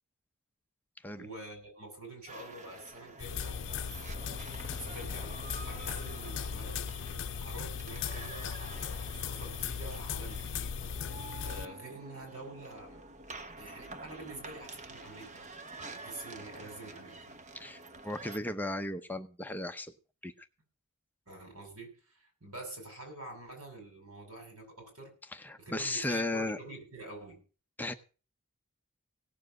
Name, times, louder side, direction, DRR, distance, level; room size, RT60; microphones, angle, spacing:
voice 1, 1.2-6.9 7.4-10.8 11.4-13.0 13.6-15.5 15.8-17.4 21.3-25.1 25.6-27.4, right 2 dB, 75° right, 4 dB, 6.8 m, -47 dB
sound 1, 2.3-18.4, right 3 dB, 35° right, 1.1 m, -48 dB
sound 2, 3.2-11.6, left 7 dB, 60° left, 0.6 m, -38 dB
voice 2, 17.5-19.9 20.2-20.3 25.4-26.6 27.8-27.9, left 1 dB, 10° left, 7 dB, 0.7 m, -35 dB
17.5 x 7.4 x 6.5 m, 0.37 s
head